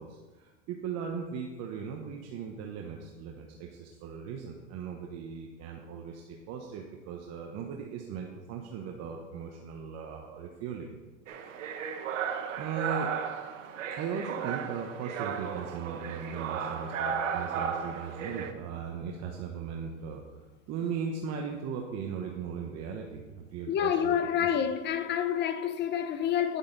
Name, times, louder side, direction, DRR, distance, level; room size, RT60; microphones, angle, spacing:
voice 1, 0.0-10.9 12.6-13.1 14.0-20.2 20.7-24.5, right 6 dB, 45° right, 1.0 m, -38 dB
sound 1, 11.3-18.5, right 7 dB, 90° right, 1.0 m, -35 dB
voice 2, 23.7-26.6, left 9 dB, 30° left, 0.7 m, -28 dB
10.0 x 7.9 x 3.9 m
supercardioid pair, 120°, 37 cm